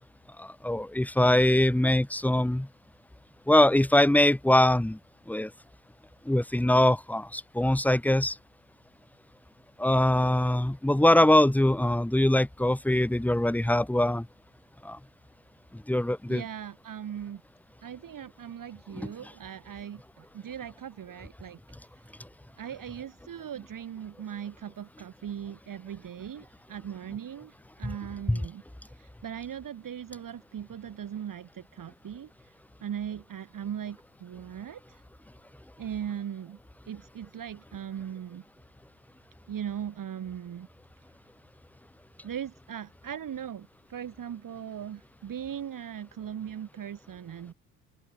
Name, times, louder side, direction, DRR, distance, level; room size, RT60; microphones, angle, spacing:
voice 1, 0.4-2.7 3.5-5.0 5.3-5.5 6.2-8.4 9.8-14.3 14.8-15.0 15.7-16.4 19.0-19.1 28.3-28.4, left 1 dB, 5° left, 1.6 m, -23 dB
voice 2, 16.3-17.4 17.8-21.6 22.6-28.6 28.9-32.6 32.8-35.0 35.8-36.6 36.9-38.4 39.5-40.7 42.2-47.5, right 9 dB, 45° right, 4.7 m, -39 dB
open air
hypercardioid pair, 60°, 47 cm